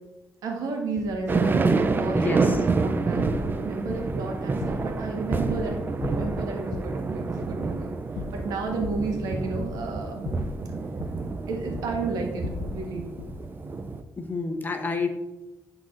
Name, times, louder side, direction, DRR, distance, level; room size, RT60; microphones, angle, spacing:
voice 1, 0.4-5.8 6.1-7.9 8.3-10.3 11.4-12.4 12.7-13.1, right 3 dB, 85° right, 2 dB, 1.6 m, -32 dB
sound 1, 1.0-1.2 1.7-2.0 2.4-2.7 3.2-3.6 3.9-4.2 4.6-5.7 6.0-7.0 7.4-7.7 8.2-9.2 9.5-10.0 10.2-11.3 11.7-12.0 12.4-12.9 13.2-13.5, left 5 dB, 80° left, 0.6 m, -37 dB
sound 2, 1.3-14.0, right 4 dB, 35° right, 0.6 m, -28 dB
voice 2, 2.1-2.6 14.2-15.1, left 3 dB, 30° left, 5 dB, 1.1 m, -28 dB
10.5 x 4.0 x 3.9 m, 1.0 s
cardioid pair, 85°, 6 cm